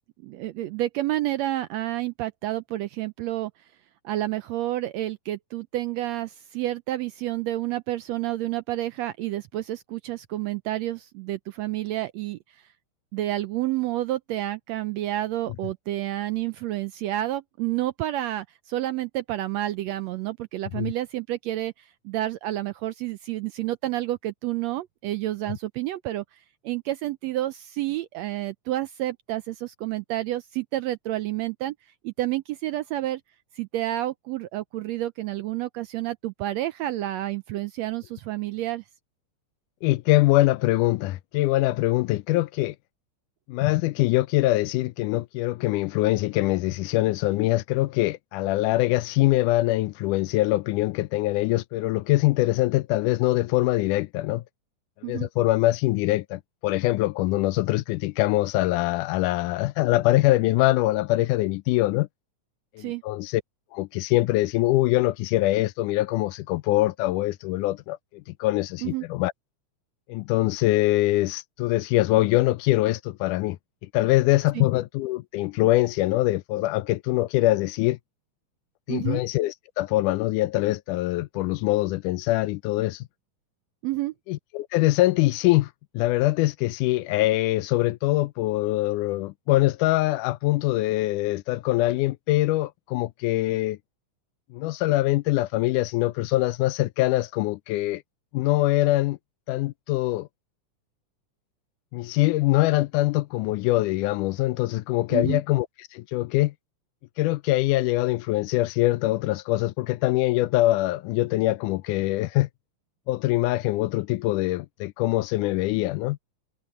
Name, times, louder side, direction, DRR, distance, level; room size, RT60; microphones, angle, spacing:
voice 1, 0.2-3.5 4.0-12.6 13.1-31.7 32.0-33.2 33.5-38.8 55.0-55.3 62.8-63.0 68.8-69.0 74.5-74.6 78.9-79.2 83.8-84.1 105.1-105.4, right 15 dB, 80° right, 1.6 m, -29 dB
voice 2, 39.8-42.8 43.5-54.4 55.0-62.1 62.8-63.4 63.7-69.3 70.1-78.0 78.9-83.1 84.3-93.8 94.5-98.0 98.3-99.2 99.5-100.3 101.9-105.7 105.9-106.5 107.2-112.5 113.1-116.2, left 17 dB, 85° left, 2.1 m, -23 dB
omnidirectional pair, 3.6 m